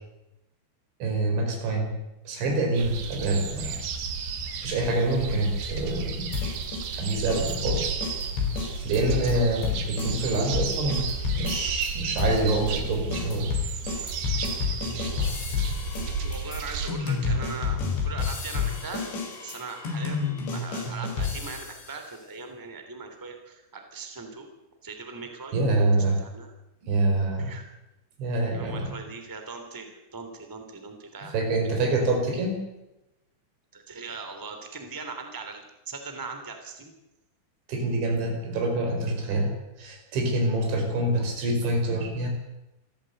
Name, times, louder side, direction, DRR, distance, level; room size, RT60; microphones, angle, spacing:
voice 1, 1.0-1.9 2.3-3.8 4.6-6.5 6.9-8.0 8.8-11.1 11.3-13.5 25.5-26.2 26.8-27.5 28.2-29.0 31.3-32.6 37.7-42.3, right 2 dB, 85° right, 3 dB, 7.1 m, -26 dB
sound 1, 2.7-16.9, right 5 dB, 65° right, 3.8 m, -33 dB
sound 2, 6.3-11.9 12.2-21.9, left 5 dB, 75° left, 6.6 m, -30 dB
voice 2, 16.2-19.0 19.4-24.5 24.8-25.6 25.9-26.5 27.4-27.6 28.5-31.4 33.7-36.9 41.2-41.3, right 4 dB, 5° right, 5 dB, 2.4 m, -40 dB
27.0 x 14.5 x 8.0 m, 0.95 s
omnidirectional pair, 5.2 m